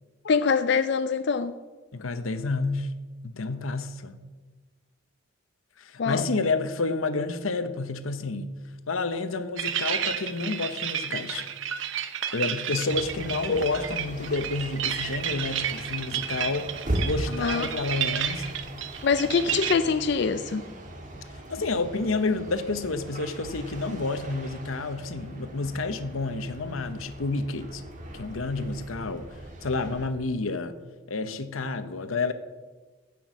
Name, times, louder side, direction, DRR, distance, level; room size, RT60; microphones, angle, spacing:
voice 1, 0.2-1.5 6.0-6.3 13.5-13.6 17.3-17.7 19.0-20.6, left 5 dB, 55° left, 0.4 m, -24 dB
voice 2, 1.9-2.9 3.2-4.2 5.8-8.5 8.9-11.5 12.3-18.5 21.5-27.8 28.1-30.7 31.1-32.3, left 3 dB, 80° left, 0.8 m, -30 dB
sound 1, 9.6-19.7, right 9 dB, 65° right, 0.8 m, -31 dB
sound 2, 12.9-30.1, right 1 dB, 40° right, 1.5 m, -39 dB
16.0 x 6.0 x 6.2 m
head